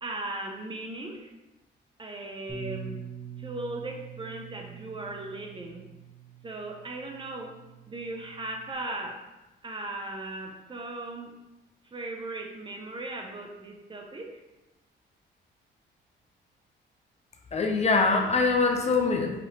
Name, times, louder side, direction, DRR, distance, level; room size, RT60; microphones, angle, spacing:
voice 1, 0.0-1.3 2.0-3.0 3.4-5.9 6.4-7.6 7.9-9.3 9.6-11.4 11.8-14.4, right 2 dB, 25° right, 2 dB, 0.6 m, -37 dB
Bass guitar, 2.5-8.7, right 7 dB, 15° left, 1.2 m, -44 dB
voice 2, 17.5-19.4, left 4 dB, 35° left, 3 dB, 0.5 m, -23 dB
5.0 x 3.1 x 2.9 m, 1.0 s
cardioid pair, 90°, 20 cm